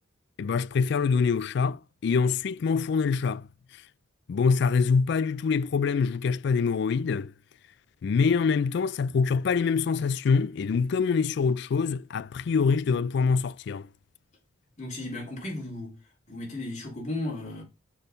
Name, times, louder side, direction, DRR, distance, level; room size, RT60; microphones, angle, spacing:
voice 1, 0.4-3.5 4.3-7.3 8.0-13.9, left 5 dB, 55° left, 0.3 m, -25 dB
voice 2, 14.8-16.0 16.3-17.6, left 2 dB, 35° left, 3.9 m, -35 dB
6.2 x 5.2 x 5.4 m
head